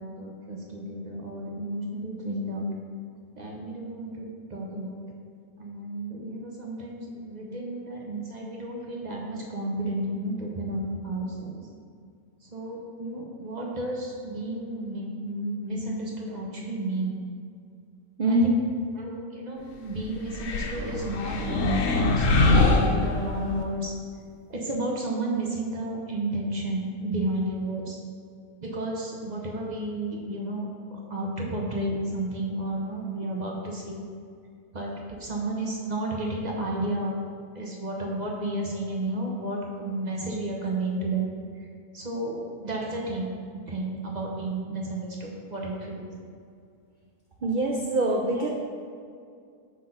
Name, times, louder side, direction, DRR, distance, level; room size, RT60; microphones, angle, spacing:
voice 1, 0.0-2.7 3.4-5.1 5.6-11.6 12.5-17.2 18.3-18.5 19.0-23.9 24.5-28.0 28.6-34.0 34.7-37.2 37.5-41.3 41.9-43.3 43.7-46.1, right 1 dB, 40° right, -2 dB, 0.6 m, -32 dB
voice 2, 18.2-18.6 47.4-48.5, right 1 dB, 90° right, 0 dB, 0.4 m, -23 dB
sound 1, 20.3-23.6, left 2 dB, 70° left, 1.0 m, -23 dB
5.8 x 3.3 x 5.4 m, 2.3 s
omnidirectional pair, 1.5 m